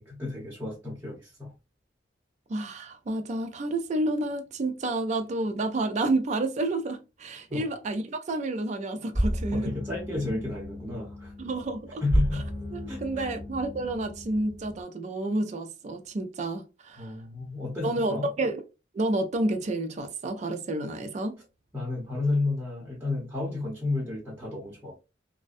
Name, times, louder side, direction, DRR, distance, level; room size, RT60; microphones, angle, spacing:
voice 1, 0.0-1.5 7.5-7.7 9.5-11.3 12.0-12.4 12.9-13.3 17.0-18.3 21.7-25.0, left 2 dB, 10° right, 0.8 m, -32 dB
voice 2, 2.5-9.7 11.4-12.0 12.7-17.1 17.8-18.6 18.9-21.4, right 2 dB, 35° right, 0.3 m, -30 dB
sound 1, 9.1-14.8, equal, 20° left, 0.9 m, -32 dB
2.5 x 2.1 x 2.4 m
head